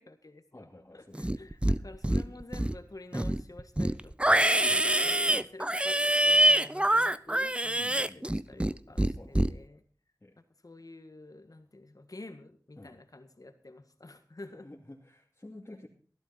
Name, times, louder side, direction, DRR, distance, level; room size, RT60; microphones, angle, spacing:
voice 1, 0.0-9.8 10.4-14.7 15.7-15.8, left 2 dB, 60° left, 8 dB, 1.7 m, -49 dB
voice 2, 0.5-1.5 4.6-4.9 7.8-8.7 9.2-9.7 10.2-10.3 12.8-13.0 14.5-15.9, left 1 dB, 40° left, -4 dB, 2.6 m, -51 dB
Livestock farm animals working animals, 1.1-1.8 2.0-2.8 3.1-8.7 9.0-9.5, right 1 dB, 15° right, 0.5 m, -25 dB
14.5 x 12.5 x 4.2 m, 0.43 s
wide cardioid pair, 45°, 7 cm